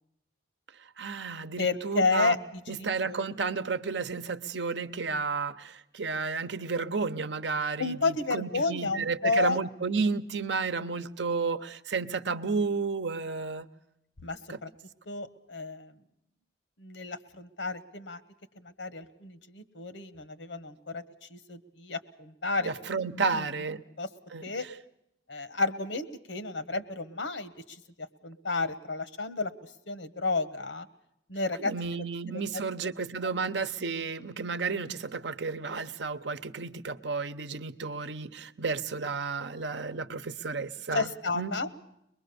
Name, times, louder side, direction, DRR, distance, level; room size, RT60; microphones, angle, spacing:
voice 1, 1.0-2.4 2.7-13.7 14.5-14.6 22.6-23.8 24.3-24.4 31.6-41.1 41.3-41.5, right 4 dB, 75° right, 0.9 m, -32 dB
voice 2, 1.6-3.3 7.8-9.6 14.2-14.7 15.1-15.9 16.8-18.2 18.6-23.5 24.0-24.1 24.4-24.6 25.3-29.5 29.9-30.9 31.3-32.1 32.3-32.6 40.9-41.7, left 3 dB, 85° left, 1.3 m, -32 dB
23.5 x 21.5 x 6.9 m
head